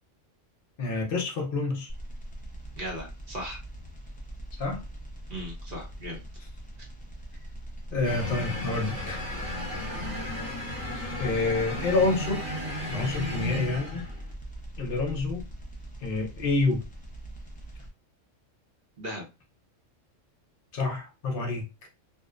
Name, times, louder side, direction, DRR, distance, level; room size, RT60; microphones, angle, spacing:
voice 1, 0.8-1.9 4.5-4.8 7.9-9.2 11.2-12.5 12.9-14.1 14.8-15.5 16.0-16.9 20.7-21.6, left 3 dB, 50° left, 0.8 m, -28 dB
sound 1, 1.9-17.9, right 1 dB, 10° left, 0.3 m, -42 dB
voice 2, 2.8-3.6 5.3-6.2 13.3-13.4 19.0-19.3, equal, 50° right, 0.8 m, -37 dB
Scary Horror Violin, 8.0-14.3, left 1 dB, 70° right, 1.2 m, -34 dB
2.6 x 2.0 x 2.4 m
omnidirectional pair, 1.3 m